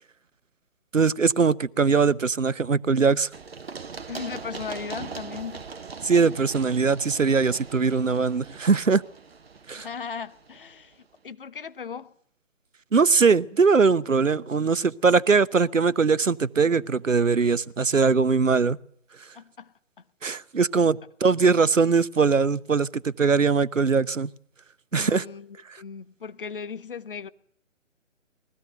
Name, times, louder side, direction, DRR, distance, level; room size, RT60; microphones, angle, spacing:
voice 1, 0.9-3.3 6.0-9.0 9.7-9.9 12.9-18.8 20.2-24.3 24.9-25.2 25.7-25.8, right 5 dB, 80° right, 0.9 m, -21 dB
Run, 3.3-11.0, right 5 dB, 50° right, 1.1 m, -41 dB
voice 2, 4.1-5.7 9.7-11.0 11.2-12.1 19.3-19.7 24.9-27.3, left 6 dB, 45° left, 0.9 m, -37 dB
21.0 x 16.0 x 7.8 m
figure-of-eight pair, 145°, 38 cm